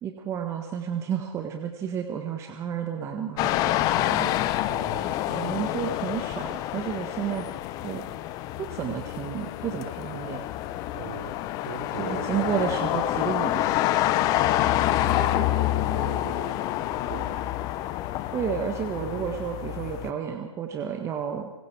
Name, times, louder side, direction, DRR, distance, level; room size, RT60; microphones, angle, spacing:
voice 1, 0.0-4.3 5.3-7.5 7.8-8.1 8.6-10.4 12.0-13.7 18.3-21.5, right 8 dB, 15° right, 5 dB, 1.5 m, -31 dB
sound 1, 3.4-20.1, left 14 dB, 20° left, 0.9 m, -27 dB
voice 2, 4.7-5.1 10.9-11.4 11.7-12.7 14.2-16.6 17.1-17.5 19.0-19.3, right 7 dB, 50° right, 7 dB, 3.6 m, -40 dB
26.0 x 21.5 x 4.7 m, 1.1 s
hypercardioid pair, 145°, 17 cm